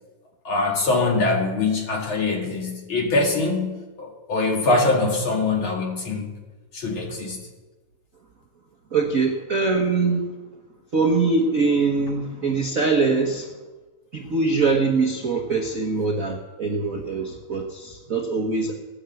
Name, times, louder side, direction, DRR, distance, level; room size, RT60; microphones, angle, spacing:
voice 1, 0.4-6.3 6.7-7.4, left 3 dB, 45° left, 1 dB, 2.6 m, -23 dB
voice 2, 8.9-10.3 10.9-13.5 14.1-18.7, right 4 dB, 50° right, 2 dB, 0.9 m, -23 dB
16.0 x 10.0 x 7.8 m, 1.3 s
omnidirectional pair, 3.4 m